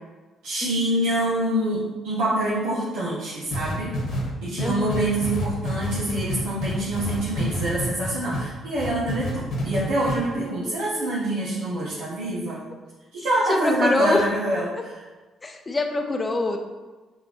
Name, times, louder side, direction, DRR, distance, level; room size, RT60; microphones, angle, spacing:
voice 1, 0.4-3.9 4.4-12.6 13.1-14.9, right 1 dB, 85° right, -8 dB, 0.8 m, -26 dB
sound 1, 3.5-8.4 8.8-9.8 10.1-10.2, left 1 dB, 70° left, 1.2 m, -28 dB
voice 2, 4.6-5.0 10.3-10.5 13.5-14.3 14.7-14.8 15.4-16.6, left 2 dB, 30° left, 4 dB, 0.6 m, -25 dB
5.3 x 2.7 x 2.8 m, 1.2 s
supercardioid pair, 60°, 0 cm